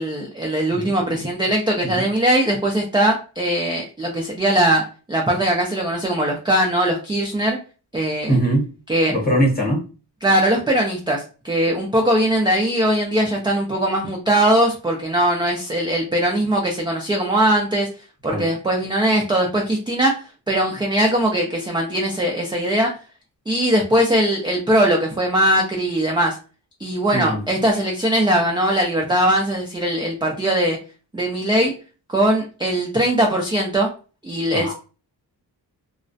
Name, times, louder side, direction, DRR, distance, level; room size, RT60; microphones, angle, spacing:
voice 1, 0.0-4.8 5.1-7.6 7.9-8.4 8.9-9.1 10.2-17.9 18.2-20.1 20.5-22.9 23.5-26.4 26.8-30.8 31.1-31.7 32.1-33.9 34.2-34.7, right 1 dB, 10° right, 0 dB, 0.3 m, -20 dB
voice 2, 8.3-8.7 9.1-9.9 18.2-18.5 27.1-27.4 34.5-34.7, right 1 dB, 20° left, -2 dB, 0.9 m, -21 dB
2.3 x 2.1 x 2.5 m, 0.34 s
wide cardioid pair, 120°, 42 cm